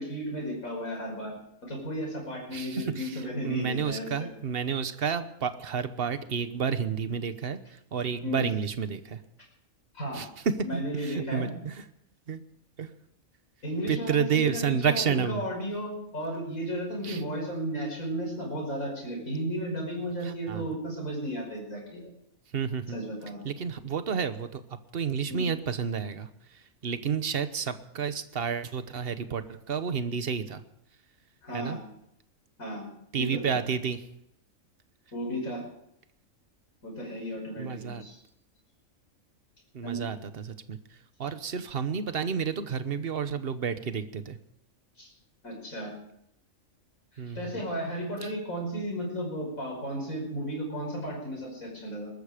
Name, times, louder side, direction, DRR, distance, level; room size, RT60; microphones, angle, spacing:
voice 1, 0.0-1.3 1.6-4.1 8.2-8.4 9.9-10.2 10.6-11.5 13.6-22.1 22.9-23.4 25.3-25.5 31.4-31.8 32.6-32.9 33.1-33.6 35.1-35.7 36.8-38.2 39.8-40.1 45.0-45.1 45.4-45.9 47.1-52.1, equal, 85° left, -1 dB, 6.1 m, -34 dB
voice 2, 2.5-7.6 7.9-9.2 10.1-11.8 12.3-12.4 12.8-12.9 13.9-15.4 17.0-17.2 20.5-20.7 22.5-23.0 23.4-24.6 24.9-26.3 26.8-30.6 31.5-31.8 33.1-34.0 37.6-38.0 39.7-40.8 41.2-44.4 47.2-47.5 48.2-48.3, right 6 dB, 50° right, 11 dB, 1.2 m, -30 dB
20.5 x 13.0 x 5.0 m, 0.76 s
omnidirectional pair, 1.4 m